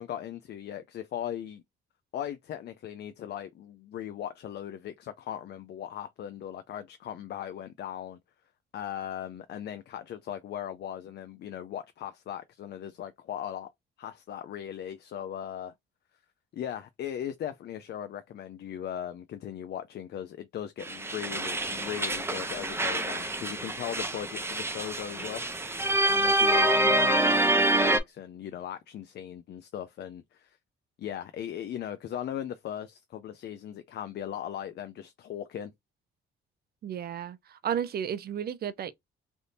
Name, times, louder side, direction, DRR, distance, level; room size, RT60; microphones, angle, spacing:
voice 1, 0.0-1.6 2.1-8.2 8.7-13.7 14.0-15.7 16.5-25.4 26.1-30.6 31.0-35.7, left 10 dB, 55° left, 0.4 m, -38 dB
sound 1, 20.8-28.0, right 1 dB, 10° right, 0.6 m, -26 dB
voice 2, 36.8-38.9, right 9 dB, 50° right, 0.5 m, -33 dB
3.4 x 2.6 x 2.5 m
cardioid pair, 90°, 20 cm